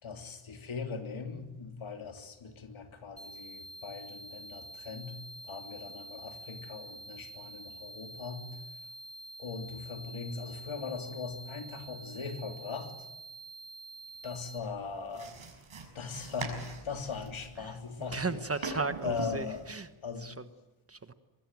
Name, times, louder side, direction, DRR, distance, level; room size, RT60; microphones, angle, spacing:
voice 1, 0.0-8.6 9.4-13.1 14.2-15.4 15.9-18.4 19.0-19.6 20.0-20.3, left 5 dB, 70° left, 5 dB, 3.3 m, -40 dB
sound 1, 3.2-14.6, right 1 dB, ahead, 2.1 m, -47 dB
sound 2, 14.6-19.8, right 4 dB, 75° right, 6.4 m, -42 dB
voice 2, 17.6-19.9 20.2-20.4 20.9-21.1, right 4 dB, 30° right, 11 dB, 1.2 m, -36 dB
24.0 x 21.5 x 9.2 m, 1.0 s
wide cardioid pair, 145°, 49 cm